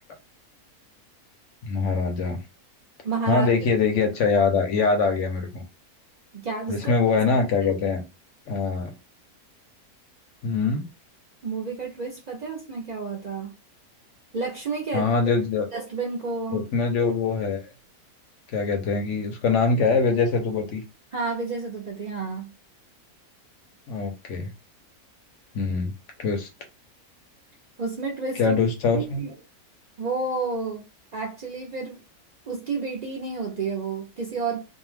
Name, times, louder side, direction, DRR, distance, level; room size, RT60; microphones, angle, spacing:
voice 1, 1.6-2.4 3.3-5.6 6.7-8.0 8.5-8.9 10.4-10.8 14.9-15.7 16.5-17.7 18.5-20.8 23.9-24.5 25.5-25.9 26.2-26.5 28.4-29.2, left 4 dB, 65° left, 0.8 m, -23 dB
voice 2, 3.0-3.5 6.3-6.9 7.6-7.7 11.4-13.5 14.3-15.1 15.7-16.7 21.1-22.5 27.8-28.6 28.9-29.4 30.0-30.8 31.1-32.0 32.5-34.6, right 4 dB, 65° right, 0.4 m, -30 dB
2.6 x 2.1 x 3.2 m
omnidirectional pair, 1.6 m